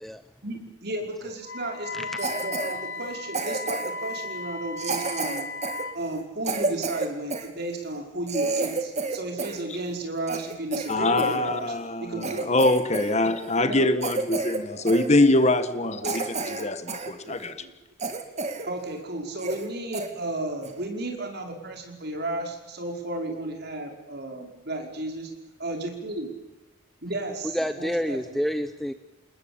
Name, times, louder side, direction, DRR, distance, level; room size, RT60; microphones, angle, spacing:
voice 1, 0.4-5.5 5.9-11.7 12.0-12.5 13.6-13.9 14.7-14.9 15.8-16.7 17.2-17.7 18.7-25.3 25.6-26.3 27.0-28.4, right 1 dB, 50° right, 2 dB, 5.4 m, -34 dB
Wind instrument woodwind instrument, 1.4-6.0, left 3 dB, 75° left, 2.5 m, -35 dB
Cough, 2.2-2.7 3.3-4.0 4.8-7.5 7.9-8.0 8.3-9.6 9.9-11.4 11.8-11.9 12.2-13.1 13.4-13.6 14.0-14.6 14.9-15.1 15.6-15.7 16.0-17.1 17.5-17.6 18.0-18.7 19.0-19.1 19.4-19.7 19.9-20.1 20.6-20.8, right 3 dB, 35° right, 2.7 m, -30 dB
voice 2, 10.9-17.6, left 2 dB, 35° left, 10 dB, 1.6 m, -23 dB
voice 3, 27.5-28.9, equal, ahead, 9 dB, 0.9 m, -28 dB
28.5 x 20.5 x 8.9 m, 1.0 s
head